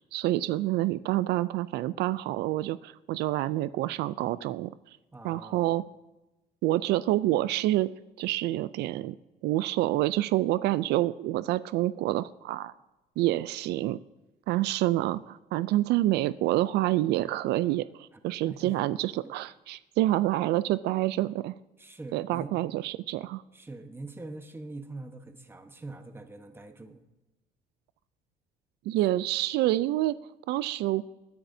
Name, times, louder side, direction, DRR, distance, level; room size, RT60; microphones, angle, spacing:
voice 1, 0.0-4.7 5.2-5.8 6.6-7.9 8.2-9.2 9.4-12.7 13.2-14.0 14.5-21.6 22.1-23.4 28.9-30.2 30.5-31.0, right 15 dB, 80° right, 16 dB, 0.4 m, -27 dB
voice 2, 5.1-5.7 18.4-18.8 19.2-19.3 21.8-22.6 23.5-27.0, right 2 dB, 15° right, 6 dB, 1.1 m, -43 dB
21.0 x 10.0 x 2.7 m, 1.0 s
cardioid pair, 110°, 17 cm